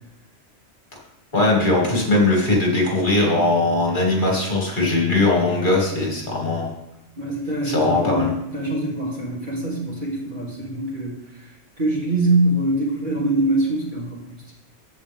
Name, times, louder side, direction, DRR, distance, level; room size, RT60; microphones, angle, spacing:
voice 1, 1.3-6.7 7.6-8.3, left 2 dB, 45° left, -2 dB, 2.3 m, -20 dB
voice 2, 7.2-11.1 11.8-14.2, right 1 dB, 45° right, -4 dB, 2.8 m, -23 dB
14.5 x 5.0 x 3.5 m, 0.97 s
omnidirectional pair, 1.2 m